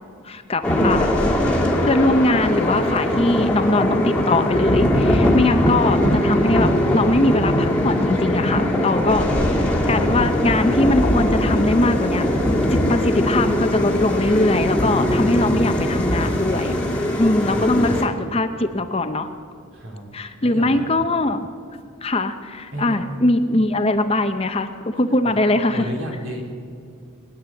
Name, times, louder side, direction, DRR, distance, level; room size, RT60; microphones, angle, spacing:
voice 1, 0.2-1.2 1.8-9.3 9.9-12.3 12.7-16.8 17.2-19.3 20.1-21.5 22.0-25.9, left 2 dB, 25° left, 8 dB, 0.7 m, -21 dB
sound 1, 0.6-18.1, left 1 dB, 5° left, 1.6 m, -20 dB
voice 2, 17.4-17.9 19.7-20.8 22.7-23.0 25.2-25.3 25.7-26.4, equal, 70° right, 1 dB, 3.3 m, -33 dB
19.5 x 10.0 x 7.1 m, 2.4 s
head